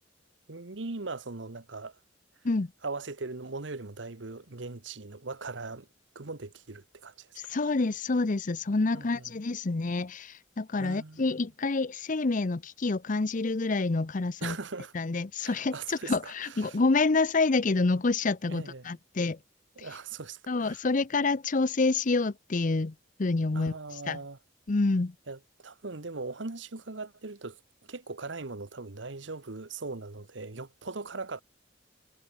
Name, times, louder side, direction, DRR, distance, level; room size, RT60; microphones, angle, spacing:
voice 1, 0.5-2.0 2.8-5.9 6.1-7.4 8.9-9.3 10.8-11.4 14.4-14.9 15.4-16.8 18.5-19.0 19.8-20.8 23.5-24.4 25.3-31.4, right 3 dB, 80° right, 1.3 m, -40 dB
voice 2, 7.4-14.6 14.9-19.4 19.8-19.9 20.5-22.9 23.2-23.7 24.1-24.2 24.7-25.1, left 3 dB, 45° left, 0.7 m, -27 dB
head